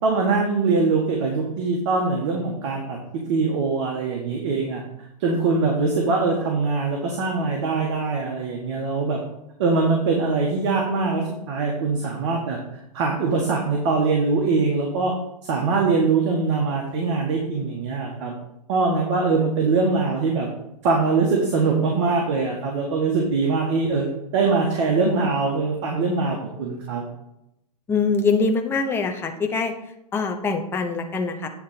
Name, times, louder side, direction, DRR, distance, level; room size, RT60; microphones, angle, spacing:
voice 1, 0.0-4.8 5.2-9.2 9.6-12.6 12.9-15.1 15.4-18.3 18.7-20.5 20.8-24.0 24.3-27.0, right 4 dB, 45° right, 0 dB, 1.5 m, -22 dB
voice 2, 27.9-29.7 30.1-31.5, left 4 dB, 10° left, 5 dB, 0.6 m, -23 dB
8.8 x 3.9 x 5.7 m, 0.84 s
hypercardioid pair, 140°, 21 cm